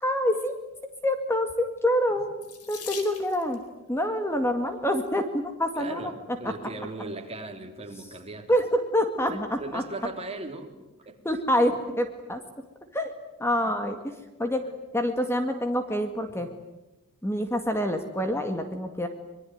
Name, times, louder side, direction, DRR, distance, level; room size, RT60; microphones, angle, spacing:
voice 1, 0.0-0.5 1.0-2.3 2.7-3.6 3.9-6.1 8.5-9.8 11.2-12.4 12.9-13.1 13.4-14.0 14.4-14.6 14.9-16.5 17.2-19.1, equal, 10° left, 6 dB, 2.0 m, -26 dB
Water tap faucet / Sink (filling or washing), 2.4-3.6 4.7-5.1 5.8-5.9 6.2-6.3, left 6 dB, 85° left, 4.5 m, -42 dB
voice 2, 5.7-8.5 9.2-10.7 11.0-11.2 11.7-11.8 13.6-13.8 16.3-16.5, right 2 dB, 30° right, 4 dB, 3.4 m, -38 dB
26.0 x 23.0 x 9.5 m, 1.0 s
head